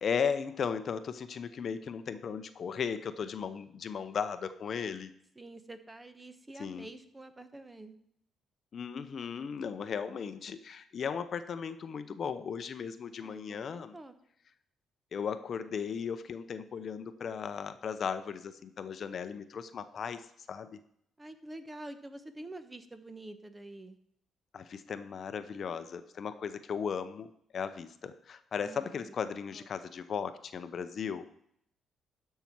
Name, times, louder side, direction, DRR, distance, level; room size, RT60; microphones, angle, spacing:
voice 1, 0.0-5.1 6.6-6.9 8.7-14.0 15.1-20.8 24.5-31.3, left 6 dB, 55° left, 11 dB, 0.7 m, -36 dB
voice 2, 5.4-8.0 13.2-14.1 21.2-24.0 28.6-29.1 29.5-29.7, right 1 dB, 15° right, 9 dB, 1.0 m, -47 dB
13.0 x 5.7 x 4.6 m, 0.72 s
cardioid pair, 90°, 0 cm